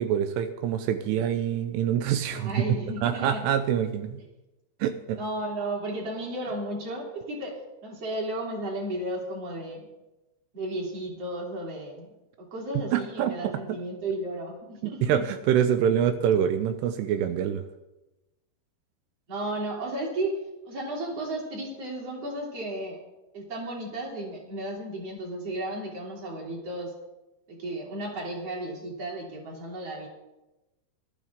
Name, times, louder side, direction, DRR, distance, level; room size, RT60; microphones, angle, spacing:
voice 1, 0.0-2.5 3.0-4.2 4.8-5.2 12.9-13.5 14.8-17.6, right 9 dB, 85° right, 8 dB, 2.7 m, -25 dB
voice 2, 2.4-3.4 5.2-9.9 10.5-12.1 12.4-15.2 19.3-23.0 23.3-26.9 27.5-30.1, right 1 dB, 40° right, -1 dB, 3.5 m, -34 dB
19.0 x 12.5 x 3.6 m, 1.0 s
omnidirectional pair, 4.9 m